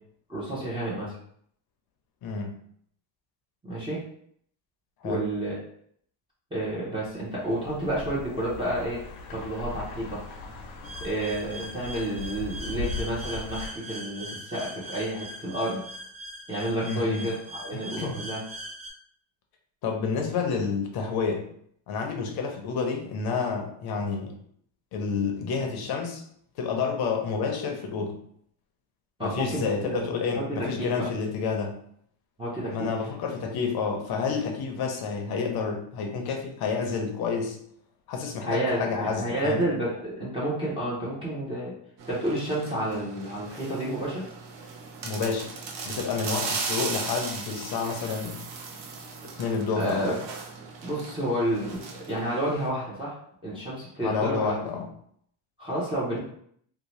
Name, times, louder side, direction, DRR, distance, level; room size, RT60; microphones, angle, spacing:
voice 1, 0.3-1.2 3.6-4.0 5.0-5.6 6.5-9.0 9.3-10.2 11.0-15.8 16.5-18.4 29.2-29.7 30.3-31.0 32.4-32.9 38.4-41.7 42.1-44.2 49.7-50.2 50.8-53.2 53.4-54.6 55.6-56.2, right 1 dB, 10° right, -8 dB, 0.6 m, -30 dB
voice 2, 2.2-2.5 5.0-5.2 16.8-17.3 17.7-18.2 19.8-21.5 21.9-24.3 24.9-26.2 26.6-28.2 29.2-31.7 32.7-37.6 38.1-39.7 45.0-45.5 45.8-48.4 49.4-50.2 54.0-54.9, left 5 dB, 50° left, 3 dB, 0.7 m, -29 dB
sound 1, 7.4-13.7, left 3 dB, 85° left, 0.8 m, -39 dB
sound 2, 10.8-18.9, right 1 dB, 80° right, 1.4 m, -41 dB
sound 3, 42.0-52.7, right 4 dB, 60° right, 0.7 m, -37 dB
2.7 x 2.2 x 3.0 m, 0.66 s
cardioid pair, 135°, 48 cm